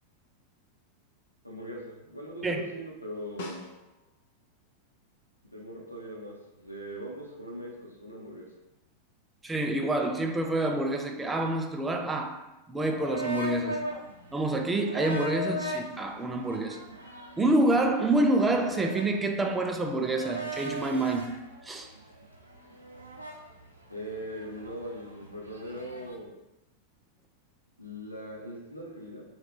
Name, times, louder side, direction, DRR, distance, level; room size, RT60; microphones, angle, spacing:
voice 1, 1.4-3.6 5.4-8.5 23.9-26.3 27.8-29.2, equal, 90° left, 0.7 m, -40 dB
Snare drum, 3.4-4.3 8.7-8.8, left 3 dB, 55° left, 0.5 m, -43 dB
voice 2, 9.4-13.8 14.3-16.8 17.4-21.9, right 2 dB, 10° right, 0.3 m, -27 dB
sound 1, 12.8-26.2, right 1 dB, 85° right, 0.5 m, -39 dB
3.0 x 2.3 x 3.6 m
figure-of-eight pair, 90°, 0 cm